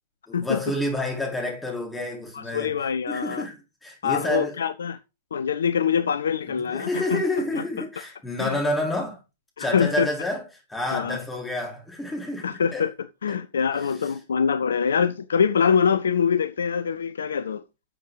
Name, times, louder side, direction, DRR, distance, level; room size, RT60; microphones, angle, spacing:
voice 1, 0.3-2.8 3.1-4.6 6.6-9.2 9.6-10.4 10.7-12.9 13.3-13.4 13.8-13.9, left 1 dB, 5° left, 4.7 m, -29 dB
voice 2, 2.3-3.5 4.0-5.0 5.3-7.2 7.5-7.6 8.4-8.6 9.6-10.1 10.9-11.2 12.4-12.9 13.2-17.6, left 7 dB, 65° left, 0.7 m, -24 dB
12.0 x 7.3 x 4.0 m
figure-of-eight pair, 105°, 0 cm